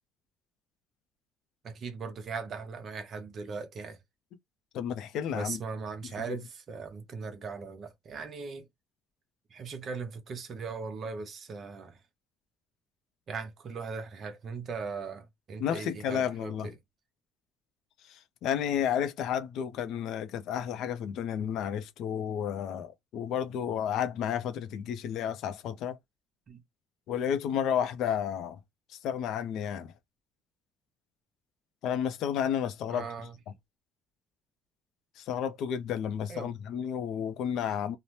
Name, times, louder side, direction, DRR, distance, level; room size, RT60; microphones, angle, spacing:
voice 1, 1.6-4.0 5.3-8.7 9.5-12.0 13.3-16.8 26.5-26.6 32.9-33.4 36.3-36.5, right 4 dB, 40° right, 0.6 m, -39 dB
voice 2, 4.7-5.6 6.3-6.4 15.6-16.7 18.1-26.0 27.1-28.6 29.0-29.9 31.8-33.0 35.2-38.0, left 9 dB, 60° left, 0.4 m, -31 dB
2.7 x 2.0 x 3.1 m
cardioid pair, 155°, 0 cm